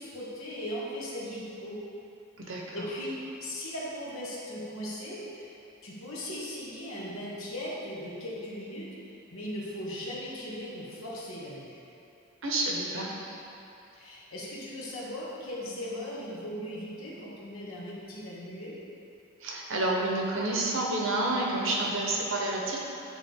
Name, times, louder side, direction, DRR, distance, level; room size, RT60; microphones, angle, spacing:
voice 1, 0.0-1.8 2.4-3.1 3.4-5.5 5.8-11.8 13.9-18.7, equal, 80° left, -6 dB, 1.5 m, -38 dB
voice 2, 12.4-13.4 19.4-22.8, right 2 dB, 65° right, -2 dB, 1.0 m, -29 dB
9.6 x 3.7 x 3.7 m, 2.7 s
head